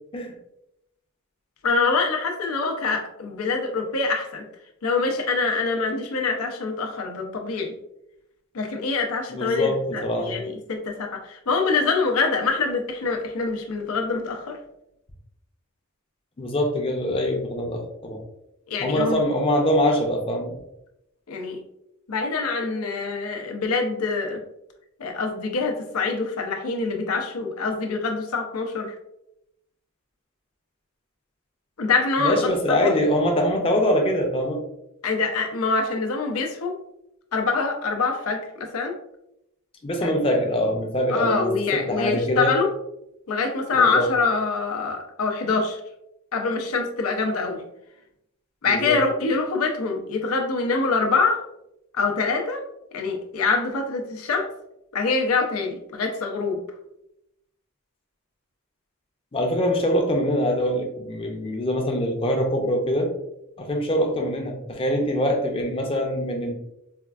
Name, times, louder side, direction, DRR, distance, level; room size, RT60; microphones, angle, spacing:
voice 1, 1.6-4.5 4.8-7.7 8.5-14.6 18.7-19.2 21.3-21.6 22.1-24.4 25.0-28.9 31.8-32.9 35.0-36.8 37.3-38.9 40.0-40.1 41.1-42.7 43.3-45.8 46.3-47.6 48.6-51.4 51.9-52.6 52.9-54.5 54.9-56.6, left 4 dB, 85° left, 3 dB, 0.6 m, -25 dB
voice 2, 9.3-10.3 16.4-18.2 18.8-20.6 32.2-34.6 39.8-42.5 43.7-44.1 48.7-49.0 59.3-63.1 63.6-66.5, equal, 25° left, 2 dB, 0.5 m, -24 dB
4.4 x 2.3 x 2.3 m, 0.83 s
head